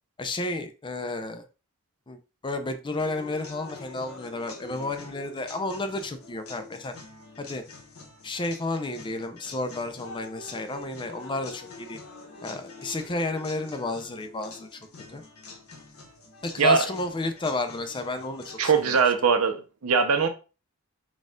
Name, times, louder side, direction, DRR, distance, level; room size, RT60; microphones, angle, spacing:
voice 1, 0.2-1.5 2.1-6.9 7.4-7.6 8.2-12.0 12.4-14.8 15.1-15.2 16.4-18.9, left 2 dB, 20° left, 0.4 m, -32 dB
sound 1, 3.0-19.0, left 3 dB, 75° left, 1.2 m, -45 dB
voice 2, 18.6-19.6 19.8-20.3, right 5 dB, 85° right, 0.7 m, -21 dB
4.0 x 2.4 x 3.7 m
head